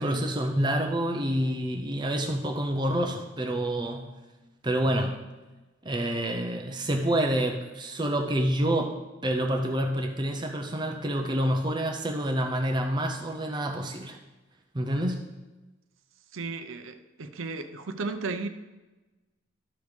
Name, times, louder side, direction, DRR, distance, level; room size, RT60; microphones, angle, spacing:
voice 1, 0.0-4.1 4.6-5.2 5.8-14.2 14.7-15.2, right 1 dB, 20° right, 2 dB, 0.6 m, -28 dB
voice 2, 16.3-18.5, right 3 dB, 80° right, 8 dB, 0.6 m, -34 dB
13.0 x 5.2 x 3.3 m, 1.1 s
head